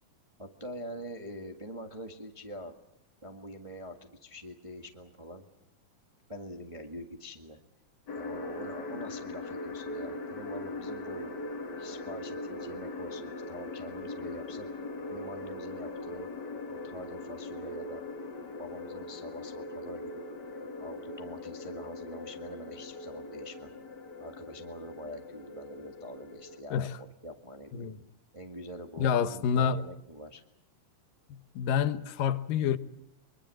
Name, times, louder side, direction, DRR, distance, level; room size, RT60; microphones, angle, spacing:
voice 1, 0.4-2.7 3.2-5.5 6.3-7.6 8.1-11.3 11.8-14.7 15.1-16.3 16.7-18.0 18.6-20.2 20.8-23.7 24.2-27.9 28.3-30.4, equal, 25° right, 0.6 m, -44 dB
sound 1, 8.1-26.6, left 2 dB, 40° left, 1.6 m, -41 dB
voice 2, 29.0-29.8 31.6-32.8, left 7 dB, 75° left, 2.7 m, -27 dB
24.5 x 23.0 x 7.7 m
omnidirectional pair, 4.0 m